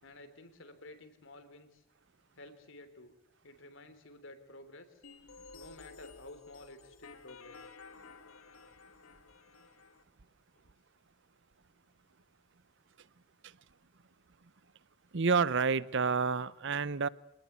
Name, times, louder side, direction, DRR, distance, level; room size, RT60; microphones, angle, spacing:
voice 1, 0.0-1.8 2.4-3.1 3.4-5.0 5.5-7.6 10.6-10.7, left 2 dB, 65° left, 3.7 m, -52 dB
sound 1, 5.0-10.0, left 4 dB, 80° left, 2.3 m, -53 dB
voice 2, 15.1-17.1, right 5 dB, 60° right, 0.8 m, -29 dB
26.5 x 19.5 x 8.3 m
head